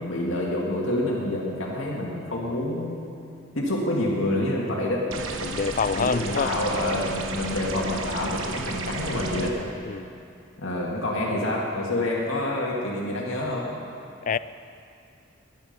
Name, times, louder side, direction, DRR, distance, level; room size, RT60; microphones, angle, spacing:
voice 1, 0.0-3.1 3.5-5.1 6.0-9.6 10.6-13.7, left 1 dB, 85° left, -3 dB, 2.3 m, -27 dB
sound 1, 5.1-9.5, right 3 dB, 80° right, 1.2 m, -33 dB
voice 2, 5.4-6.5 9.8-10.1 14.2-14.4, left 5 dB, 40° left, 16 dB, 0.3 m, -26 dB
21.5 x 10.0 x 5.4 m, 2.5 s
head